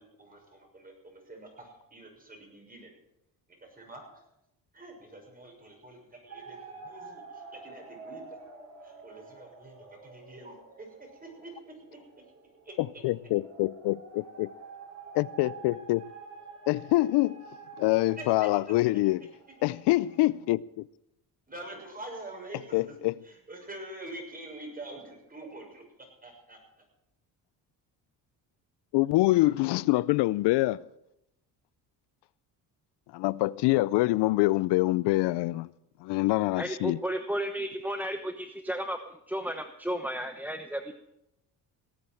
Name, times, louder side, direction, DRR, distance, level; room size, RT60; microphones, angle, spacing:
voice 1, 0.0-2.9 3.6-4.0 4.7-8.4 8.8-11.7 12.6-12.7 18.2-18.7 21.5-23.0 23.2-25.8 26.2-26.6, right 2 dB, 20° right, 6.4 m, -46 dB
sound 1, 6.3-20.3, right 4 dB, 40° right, 5.3 m, -48 dB
voice 2, 12.8-13.9 14.4-14.5 15.2-16.1 16.7-17.4 17.8-19.2 19.6-20.8 22.7-23.1 28.9-30.9 33.1-35.7 36.0-37.0, left 19 dB, 75° left, 0.5 m, -25 dB
voice 3, 36.6-40.9, right 1 dB, 5° right, 0.9 m, -33 dB
18.0 x 8.7 x 7.7 m
cardioid pair, 90°, 41 cm